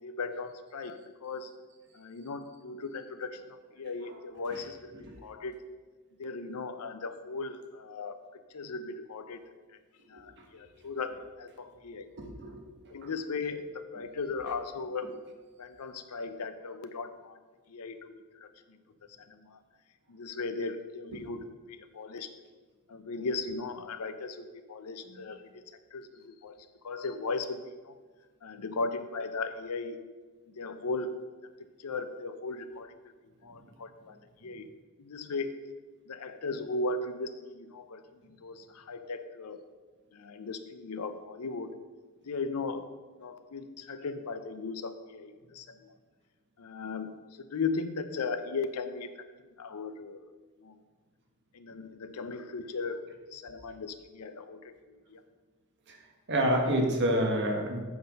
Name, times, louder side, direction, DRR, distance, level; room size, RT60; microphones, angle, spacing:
voice 1, 0.0-1.5 1.9-4.9 5.2-5.6 6.2-8.2 8.5-9.4 9.7-9.8 10.1-12.1 12.9-15.1 15.6-17.4 17.7-18.8 19.2-19.6 20.1-22.3 22.9-25.6 25.9-28.0 28.4-30.0 30.5-31.2 31.6-33.0 33.4-34.7 35.0-35.5 36.1-39.6 40.1-41.7 42.2-45.9 46.6-49.1 49.4-50.2 50.6-50.8 51.5-53.0 53.3-54.6 55.1-55.2, left 4 dB, 90° left, 10 dB, 0.6 m, -37 dB
voice 2, 12.2-12.6 13.0-13.1 15.0-15.1 21.1-21.2 25.1-25.2 55.9-56.0 56.3-57.8, right 1 dB, 55° right, 2 dB, 1.3 m, -29 dB
7.8 x 5.8 x 5.2 m, 1.4 s
head